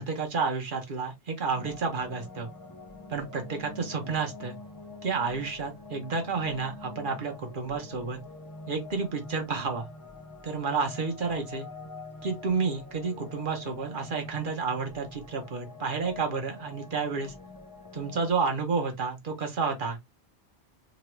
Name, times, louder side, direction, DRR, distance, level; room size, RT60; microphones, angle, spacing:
voice 1, 0.0-2.5 3.1-4.6 5.0-8.2 8.7-9.9 10.4-11.7 12.2-17.3 17.9-20.0, right 4 dB, 50° right, 0.9 m, -30 dB
sound 1, 1.5-18.3, left 3 dB, 30° left, 0.4 m, -45 dB
2.9 x 2.3 x 3.0 m
omnidirectional pair, 1.1 m